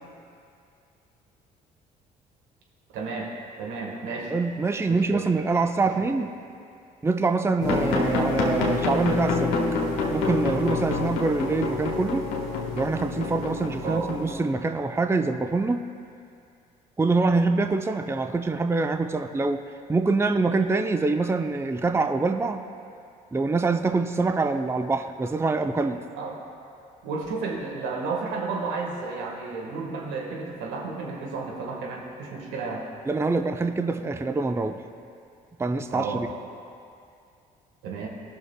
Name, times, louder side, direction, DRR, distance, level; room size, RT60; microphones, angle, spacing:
voice 1, 2.9-3.3 3.6-4.3 4.9-5.3 5.8-5.9 13.8-14.1 26.2-26.3 27.0-32.8 35.9-36.3 37.8-38.1, right 4 dB, 70° right, -1 dB, 1.5 m, -32 dB
voice 2, 4.3-6.3 7.0-9.6 10.1-12.2 12.7-15.8 17.0-19.6 19.9-22.6 23.3-26.0 33.1-34.8 35.6-36.3, right 3 dB, 15° right, 7 dB, 0.5 m, -25 dB
sound 1, 7.6-14.3, left 3 dB, 75° left, 1.3 m, -27 dB
19.0 x 6.3 x 2.2 m, 2.4 s
hypercardioid pair, 55°, 20 cm